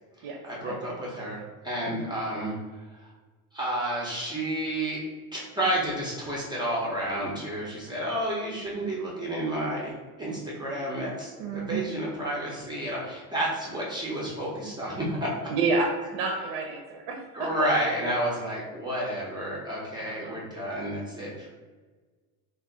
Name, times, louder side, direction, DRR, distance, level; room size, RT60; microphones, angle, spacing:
voice 1, 0.2-2.5 2.9-3.1 3.5-5.0 5.3-15.3 17.3-21.5, right 1 dB, 10° right, -6 dB, 0.4 m, -31 dB
voice 2, 11.4-11.8 15.5-15.9 16.1-17.9 20.0-20.4, right 4 dB, 85° right, 1 dB, 0.6 m, -30 dB
2.4 x 2.2 x 3.6 m, 1.4 s
cardioid pair, 150°, 40 cm